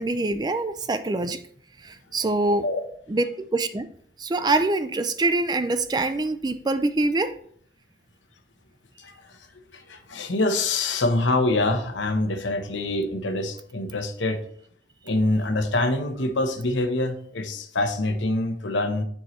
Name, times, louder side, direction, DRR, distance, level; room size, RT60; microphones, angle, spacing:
voice 1, 0.0-1.4 1.8-2.7 3.1-3.9 4.2-7.4, right 2 dB, 20° right, 11 dB, 0.3 m, -24 dB
voice 2, 9.7-14.4 15.1-19.0, left 2 dB, 85° left, 7 dB, 1.0 m, -25 dB
10.0 x 4.6 x 3.1 m, 0.62 s
head